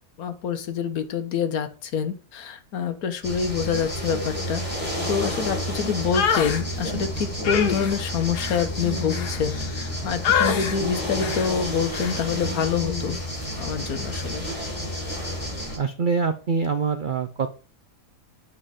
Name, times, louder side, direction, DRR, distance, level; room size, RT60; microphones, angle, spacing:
voice 1, 0.2-4.6 5.1-13.2 13.6-14.4, left 7 dB, 70° left, 9 dB, 1.4 m, -26 dB
sound 1, 3.2-15.8, equal, 20° left, 3.7 m, -30 dB
sound 2, 6.1-6.6 7.4-9.9 10.2-10.8 11.2-11.5 11.9-12.2, left 7 dB, 85° left, 1.6 m, -26 dB
voice 2, 15.8-17.5, right 5 dB, 70° right, 8 dB, 0.4 m, -25 dB
7.7 x 4.2 x 4.9 m, 0.37 s
omnidirectional pair, 1.7 m